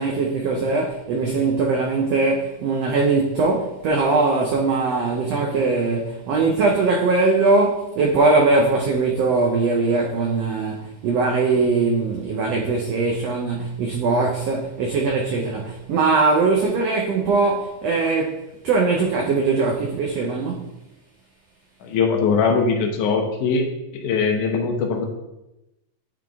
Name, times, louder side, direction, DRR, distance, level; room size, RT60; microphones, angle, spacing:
voice 1, 0.0-20.7, right 3 dB, 90° right, 1.4 m, -21 dB
voice 2, 21.8-23.7 23.9-25.1, left 5 dB, 75° left, 2.2 m, -21 dB
9.5 x 3.9 x 3.5 m
omnidirectional pair, 3.8 m